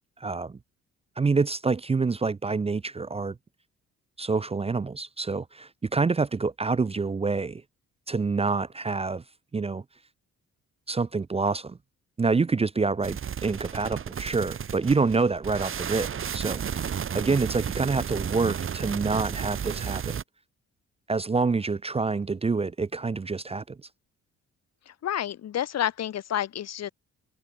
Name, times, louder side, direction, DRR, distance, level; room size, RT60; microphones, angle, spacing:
voice 1, 0.2-0.6 1.2-3.4 4.2-7.6 8.1-9.2 9.5-9.8 10.9-11.8 12.2-16.9 17.1-20.2 21.1-23.8, right 4 dB, 20° right, 0.6 m, -27 dB
sound 1, 13.0-20.2, right 8 dB, 45° right, 1.4 m, -33 dB
voice 2, 24.9-26.9, left 10 dB, 60° left, 1.2 m, -30 dB
cardioid pair, 90°, 30 cm